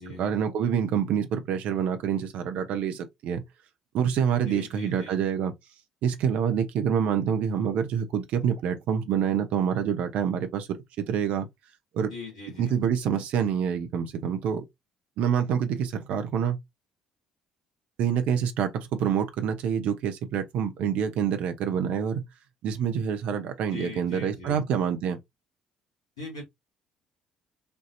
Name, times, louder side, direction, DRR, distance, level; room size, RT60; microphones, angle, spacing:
voice 1, 0.2-3.4 3.9-5.5 6.0-10.7 11.1-11.5 11.9-12.1 12.6-14.6 15.2-16.6 18.0-22.2 22.6-25.2, right 8 dB, 60° right, 0.8 m, -26 dB
voice 2, 4.4-5.2 12.1-12.7 23.7-24.6 26.2-26.4, left 3 dB, 85° left, 2.2 m, -40 dB
5.3 x 2.8 x 2.7 m
figure-of-eight pair, 50°, 3 cm